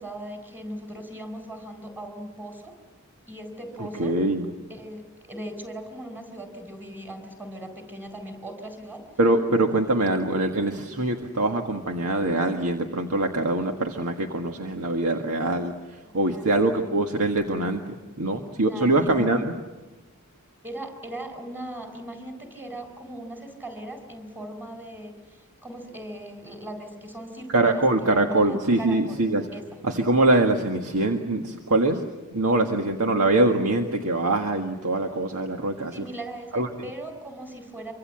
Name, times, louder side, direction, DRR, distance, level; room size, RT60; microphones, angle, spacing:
voice 1, 0.0-2.8 3.3-4.2 4.7-9.0 16.1-16.5 18.6-19.3 20.6-29.2 29.5-29.6 35.9-37.9, right 1 dB, 10° right, 6 dB, 4.4 m, -39 dB
voice 2, 3.8-4.5 9.2-17.8 18.2-19.5 27.5-29.5 29.8-32.0 32.3-36.0 36.5-36.7, right 2 dB, 75° right, 3 dB, 1.7 m, -23 dB
26.0 x 25.0 x 7.7 m, 1.1 s
head